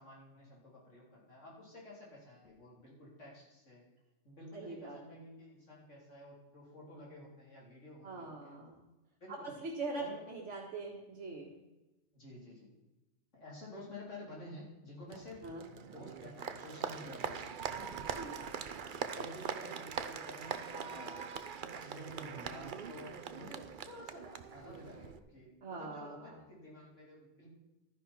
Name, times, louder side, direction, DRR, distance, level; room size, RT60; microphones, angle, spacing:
voice 1, 0.0-3.8 4.2-8.6 9.2-9.6 10.0-10.3 12.1-12.7 13.3-15.5 15.8-17.4 17.8-18.0 19.2-21.3 21.7-27.5, left 1 dB, 85° left, -4 dB, 4.1 m, -51 dB
voice 2, 4.5-5.0 8.0-8.7 9.3-11.5 15.4-15.6 18.2-18.4 19.2-19.3 25.6-26.2, right 3 dB, 75° right, -3 dB, 2.0 m, -42 dB
Applause, 15.1-25.2, right 6 dB, 50° right, 0.8 m, -42 dB
12.5 x 10.5 x 4.4 m, 1.0 s
omnidirectional pair, 1.2 m